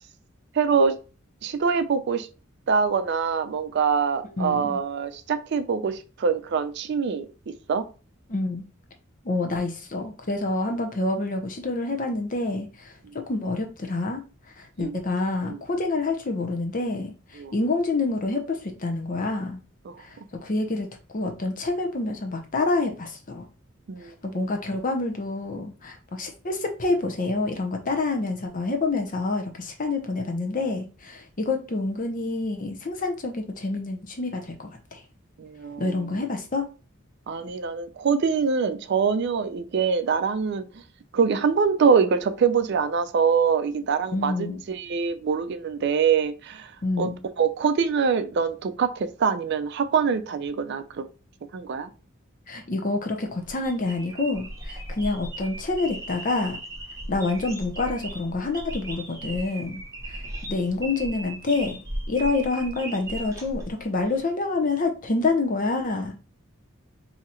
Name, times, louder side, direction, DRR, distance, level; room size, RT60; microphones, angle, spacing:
voice 1, 0.5-0.9 1.4-2.3 2.7-7.3 7.7-7.8 14.8-14.9 15.4-15.6 17.4-17.5 19.9-20.0 23.9-24.1 35.4-35.9 37.3-40.6 41.1-46.7 47.0-47.1 47.4-51.0 51.5-51.9, right 6 dB, 55° right, 0.4 m, -24 dB
voice 2, 4.4-4.8 8.3-8.6 9.2-12.9 13.3-14.2 14.6-19.6 20.0-20.2 20.4-20.9 21.1-23.5 24.0-35.0 35.8-36.7 44.1-44.6 46.8-47.2 52.5-56.6 57.1-59.8 60.1-60.2 60.5-61.8 62.1-66.1, left 3 dB, 40° left, 0.7 m, -27 dB
sound 1, 53.3-64.2, right 1 dB, 15° right, 0.8 m, -37 dB
2.8 x 2.4 x 4.2 m
head